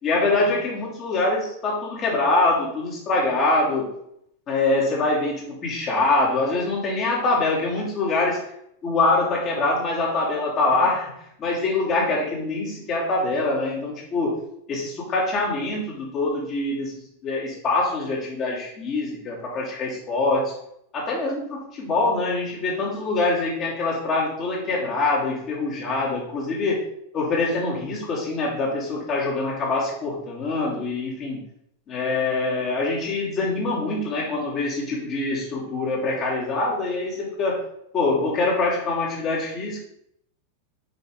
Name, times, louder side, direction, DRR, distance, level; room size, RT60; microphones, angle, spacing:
voice 1, 0.0-3.9 4.5-8.4 8.8-11.1 11.4-16.9 17.2-20.5 20.9-26.9 27.1-31.4 31.9-37.6 37.9-39.8, left 2 dB, 30° left, -4 dB, 3.0 m, -24 dB
6.8 x 5.8 x 3.7 m, 0.72 s
figure-of-eight pair, 90°, 0 cm